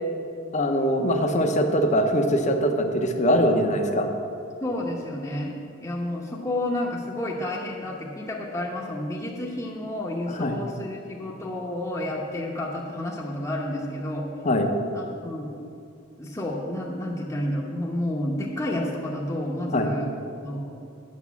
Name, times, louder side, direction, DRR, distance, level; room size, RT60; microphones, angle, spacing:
voice 1, 0.5-4.1 10.4-10.6 14.4-14.7 19.7-19.9, equal, 40° left, 5 dB, 0.8 m, -22 dB
voice 2, 3.4-3.8 4.6-5.5 5.8-14.3 14.9-15.5 16.2-20.1 20.4-20.6, left 1 dB, 15° left, -4 dB, 0.9 m, -30 dB
8.3 x 6.9 x 7.0 m, 2.6 s
head